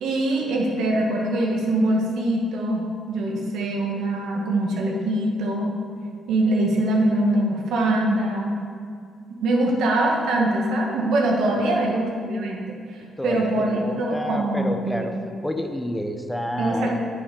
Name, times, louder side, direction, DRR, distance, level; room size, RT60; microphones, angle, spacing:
voice 1, 0.0-5.7 6.3-8.6 9.4-15.2 16.6-16.9, right 1 dB, 80° right, -1 dB, 1.6 m, -23 dB
voice 2, 11.5-11.9 13.2-15.2 15.4-16.9, left 1 dB, 5° left, 5 dB, 0.8 m, -29 dB
8.2 x 6.8 x 5.5 m, 2.2 s
cardioid pair, 90°, 0 cm